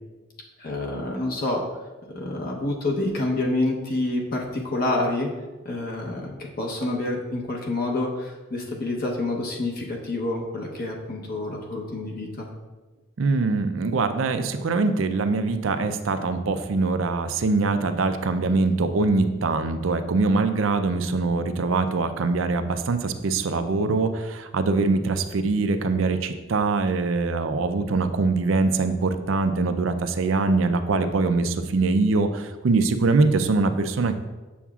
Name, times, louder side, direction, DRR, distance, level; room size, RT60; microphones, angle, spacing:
voice 1, 0.6-1.6 2.1-5.3 5.6-12.5, left 2 dB, 50° left, -1 dB, 0.9 m, -28 dB
voice 2, 13.2-34.2, right 3 dB, 80° right, 9 dB, 0.5 m, -23 dB
7.1 x 7.0 x 2.4 m, 1.2 s
head